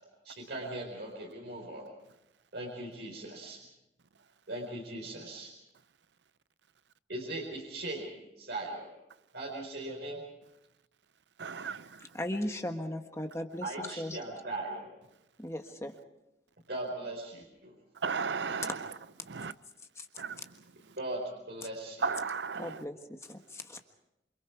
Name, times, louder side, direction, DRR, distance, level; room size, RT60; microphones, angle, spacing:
voice 1, 0.2-1.9 2.5-3.6 4.5-5.5 7.1-8.9 9.3-10.2 13.6-14.9 16.7-17.7 21.0-22.1, right 2 dB, 75° right, 4.8 m, -39 dB
voice 2, 11.4-11.9 18.0-18.8 19.3-19.5 20.2-20.4 22.0-22.8, right 5 dB, 90° right, 0.7 m, -34 dB
voice 3, 12.1-14.2 15.4-16.0 20.0-20.1 22.6-23.8, left 1 dB, 15° left, 1.4 m, -37 dB
28.0 x 25.5 x 4.7 m
head